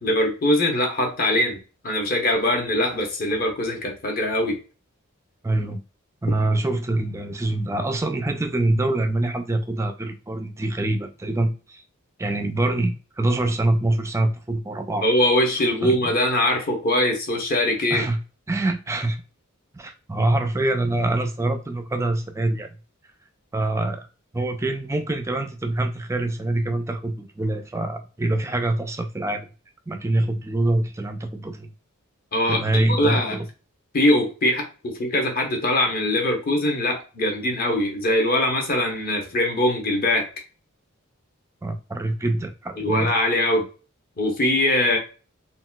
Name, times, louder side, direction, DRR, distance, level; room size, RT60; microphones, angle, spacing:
voice 1, 0.0-4.6 15.0-18.1 32.3-33.4 33.9-40.3 42.8-43.7 44.2-45.0, left 1 dB, 45° left, 0.9 m, -22 dB
voice 2, 5.4-5.8 6.2-11.8 12.2-15.1 15.8-16.1 17.9-18.2 18.5-19.2 19.7-22.7 23.5-24.1 24.3-29.5 29.9-31.7 32.4-33.5 41.6-43.1, right 2 dB, 15° right, 0.3 m, -25 dB
3.9 x 2.3 x 2.2 m
head